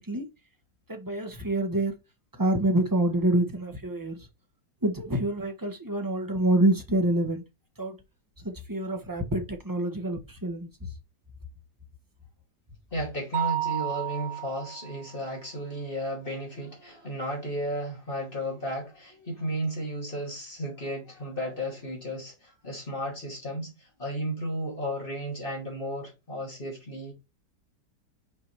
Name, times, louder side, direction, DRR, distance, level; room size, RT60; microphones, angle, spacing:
voice 1, 0.9-1.9 2.4-4.2 4.8-7.4 7.8-8.0 8.4-10.7, right 1 dB, 15° right, 1.1 m, -26 dB
voice 2, 12.9-27.1, equal, 30° left, 2.9 m, -34 dB
Mallet percussion, 13.3-15.1, right 14 dB, 70° right, 1.1 m, -32 dB
6.1 x 4.7 x 4.8 m
omnidirectional pair, 1.9 m